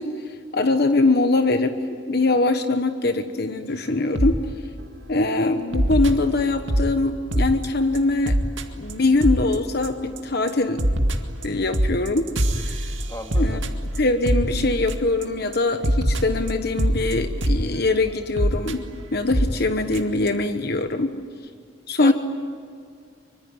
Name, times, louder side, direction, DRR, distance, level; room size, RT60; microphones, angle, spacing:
voice 1, 0.0-1.8 2.1-4.4 5.1-8.4 8.7-10.8 11.4-12.3 12.5-12.9 13.3-13.6 14.0-18.8 19.1-21.2 21.9-22.1, left 2 dB, 55° left, 7 dB, 1.2 m, -22 dB
sound 1, 4.1-4.4 4.8-5.0 5.7-6.9 7.3-7.7 7.9-8.0 8.2-8.6 8.9-9.0 9.2-9.5 9.8-10.2 10.5-15.2 15.5-15.6 15.8-17.6 18.4-18.7 19.3-19.5 19.9-20.0 20.3-20.4, right 1 dB, 80° right, 2.1 m, -23 dB
voice 2, 13.1-13.6 22.0-22.1, left 1 dB, 15° left, 3 dB, 2.5 m, -35 dB
25.0 x 24.5 x 9.5 m, 2.2 s
head